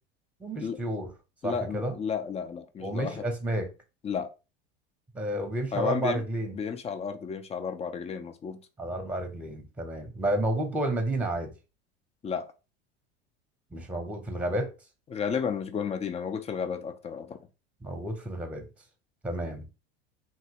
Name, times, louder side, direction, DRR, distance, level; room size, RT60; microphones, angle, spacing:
voice 1, 0.4-1.1 1.4-2.0 2.8-3.7 5.1-6.5 8.8-11.5 13.7-14.7 17.8-18.7 19.2-19.7, right 1 dB, 5° right, 0.8 m, -31 dB
voice 2, 1.4-3.2 4.0-4.3 5.7-6.2 6.5-8.6 12.2-12.5 15.1-17.4, left 6 dB, 20° left, 0.4 m, -32 dB
2.9 x 2.7 x 2.8 m
hypercardioid pair, 80°, 32 cm